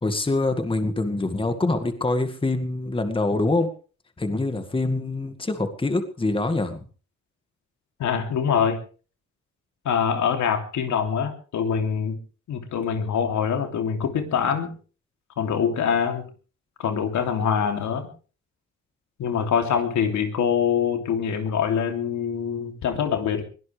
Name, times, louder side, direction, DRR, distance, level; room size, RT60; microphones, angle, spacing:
voice 1, 0.0-3.7 4.2-6.9, left 2 dB, 15° left, 8 dB, 2.0 m, -25 dB
voice 2, 8.0-8.8 9.8-12.2 12.5-14.7 15.4-16.3 16.8-18.1 19.2-23.4, left 7 dB, 70° left, 5 dB, 3.1 m, -24 dB
22.0 x 17.0 x 3.4 m, 0.39 s
cardioid pair, 90°, 30 cm